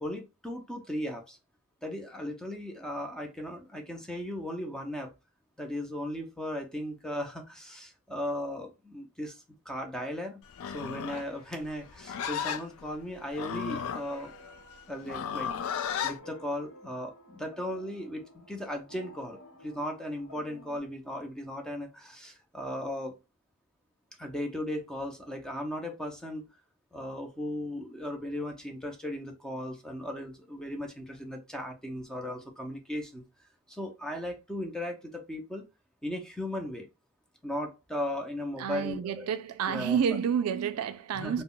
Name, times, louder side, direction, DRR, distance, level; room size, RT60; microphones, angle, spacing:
voice 1, 0.0-1.4 1.8-5.1 5.6-14.3 14.9-23.1 24.2-26.5 26.9-33.2 33.7-35.6 36.0-36.9 37.4-39.3 39.7-40.0 41.1-41.4, left 1 dB, 5° left, 0.5 m, -37 dB
Livestock farm animals working animals, 10.5-16.2, left 8 dB, 65° left, 0.3 m, -35 dB
sound 1, 13.7-20.8, equal, 85° left, 0.9 m, -53 dB
voice 2, 38.6-41.4, right 7 dB, 70° right, 0.3 m, -29 dB
2.3 x 2.0 x 3.7 m
head